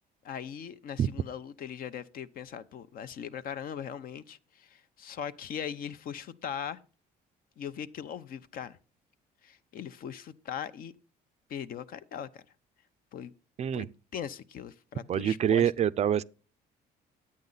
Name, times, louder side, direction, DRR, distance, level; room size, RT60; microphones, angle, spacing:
voice 1, 0.2-6.8 7.6-8.8 9.4-10.9 11.5-12.4 13.1-13.3 13.7-15.7, left 8 dB, 60° left, 0.7 m, -40 dB
voice 2, 15.1-16.2, right 9 dB, 40° right, 0.4 m, -26 dB
10.5 x 8.6 x 4.0 m
cardioid pair, 110°, 17 cm